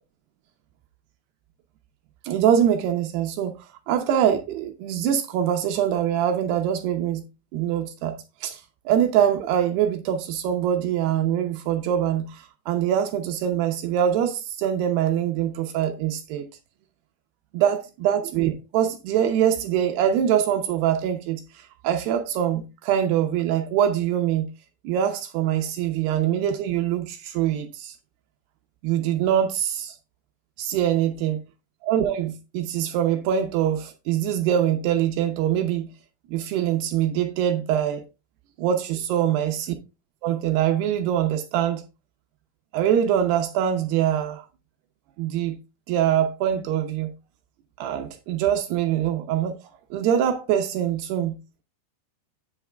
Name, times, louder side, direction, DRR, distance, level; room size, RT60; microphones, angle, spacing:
voice 1, 2.2-3.5 3.9-7.2 7.5-16.5 17.5-21.4 21.8-24.5 24.8-28.0 28.8-30.0 30.6-31.4 31.8-35.9 36.3-38.0 38.6-39.5 40.2-41.8 42.7-44.5 45.2-45.6 45.9-47.1 47.8-49.5 49.9-51.4, right 10 dB, 80° right, 2.7 m, -23 dB
8.8 x 6.2 x 3.4 m
omnidirectional pair, 4.9 m